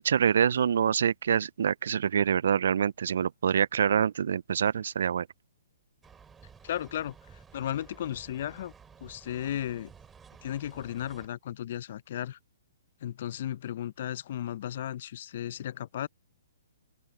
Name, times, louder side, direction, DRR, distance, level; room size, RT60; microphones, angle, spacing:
voice 1, 0.0-5.3, right 8 dB, 65° right, 0.6 m, -26 dB
sound 1, 6.0-11.3, right 6 dB, 15° right, 3.4 m, -53 dB
voice 2, 6.6-7.1 7.5-8.7 9.0-9.9 10.4-12.4 13.0-16.1, left 11 dB, 55° left, 0.7 m, -35 dB
open air
hypercardioid pair, 130°, 0 cm